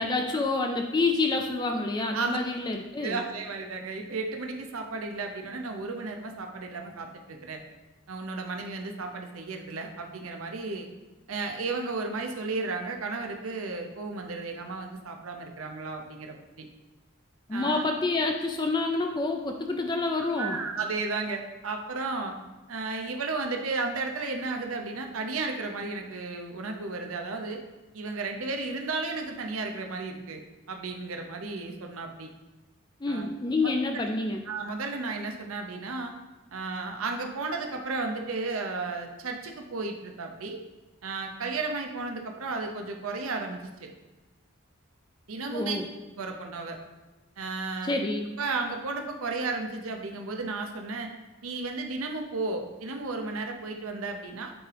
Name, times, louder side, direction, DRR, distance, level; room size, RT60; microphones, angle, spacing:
voice 1, 0.0-3.2 17.5-20.6 33.0-34.4 45.5-45.8 47.8-48.3, left 3 dB, 20° left, 3 dB, 0.3 m, -28 dB
voice 2, 3.0-7.6 8.1-10.9 11.3-16.7 17.5-17.8 20.3-22.3 22.7-27.6 27.9-30.4 30.7-32.3 33.1-33.3 33.9-34.1 34.5-36.1 36.5-40.6 41.0-43.9 45.3-45.8 46.2-46.8 47.4-47.9 48.4-51.1 51.4-54.5, right 3 dB, 80° right, 3 dB, 0.7 m, -33 dB
8.7 x 3.6 x 3.4 m, 1.1 s
head